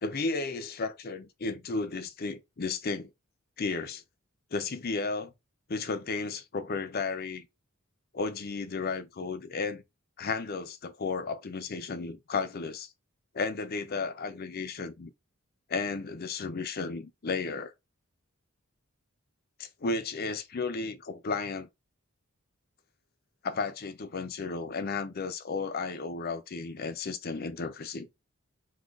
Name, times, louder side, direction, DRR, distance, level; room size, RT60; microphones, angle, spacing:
voice 1, 0.0-3.1 3.6-4.0 4.5-5.3 5.7-7.5 8.1-9.8 10.2-12.9 13.3-15.1 15.7-17.7 19.6-21.7 23.4-28.1, left 4 dB, 45° left, 0.5 m, -33 dB
3.8 x 2.7 x 2.4 m
head